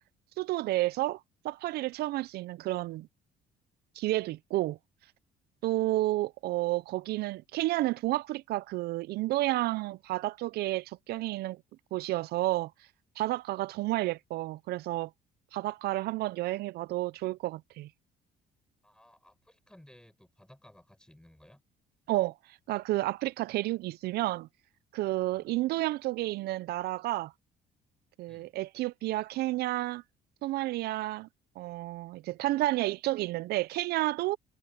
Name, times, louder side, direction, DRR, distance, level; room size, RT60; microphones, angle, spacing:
voice 1, 0.4-3.1 4.0-4.8 5.6-11.6 11.9-12.7 13.2-15.1 15.5-17.9 22.1-24.5 24.9-27.3 28.2-30.0 30.4-31.3 31.6-34.4, right 17 dB, 70° right, 0.4 m, -31 dB
voice 2, 18.8-21.6 25.3-25.5 28.3-28.5, left 1 dB, 5° left, 6.9 m, -58 dB
cardioid pair, 110°, 17 cm